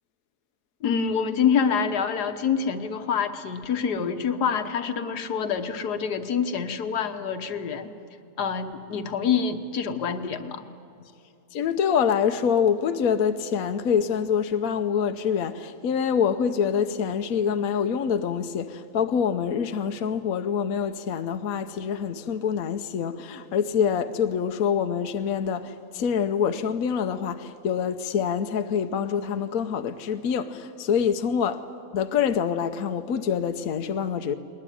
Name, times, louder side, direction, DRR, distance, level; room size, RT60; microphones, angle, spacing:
voice 1, 0.8-7.9 8.4-10.6, left 6 dB, 80° left, 1.7 m, -26 dB
voice 2, 11.5-31.6 31.9-34.3, left 7 dB, 65° left, 1.2 m, -25 dB
20.5 x 20.0 x 10.0 m
omnidirectional pair, 1.7 m